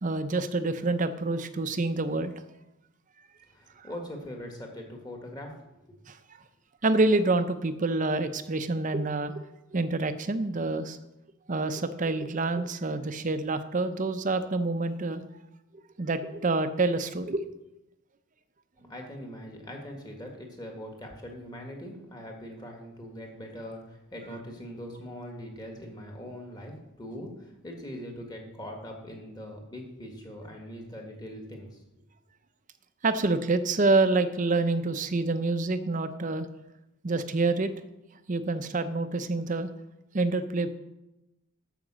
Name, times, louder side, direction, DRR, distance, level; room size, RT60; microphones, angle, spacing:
voice 1, 0.0-2.3 6.1-6.2 6.8-9.4 9.7-11.0 11.5-15.2 16.0-17.4 33.0-36.5 37.0-37.7 38.3-39.7 40.1-40.7, right 3 dB, 35° right, 11 dB, 0.6 m, -27 dB
voice 2, 3.5-5.6 18.9-31.8, equal, 20° left, 2 dB, 1.6 m, -41 dB
8.9 x 5.8 x 7.4 m, 0.93 s
head